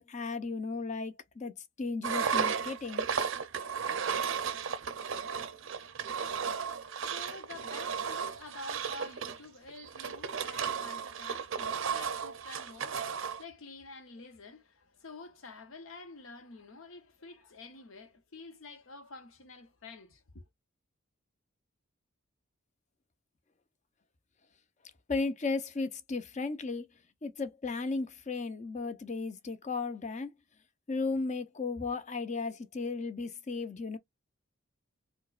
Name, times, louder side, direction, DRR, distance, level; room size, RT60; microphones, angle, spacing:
voice 1, 0.0-3.1 25.1-26.9 27.2-30.3 30.9-34.0, left 3 dB, 35° left, 0.5 m, -35 dB
Engine, 2.0-13.4, right 6 dB, 65° right, 0.5 m, -34 dB
voice 2, 6.3-20.4, left 3 dB, 75° left, 0.8 m, -49 dB
4.4 x 2.1 x 2.4 m
head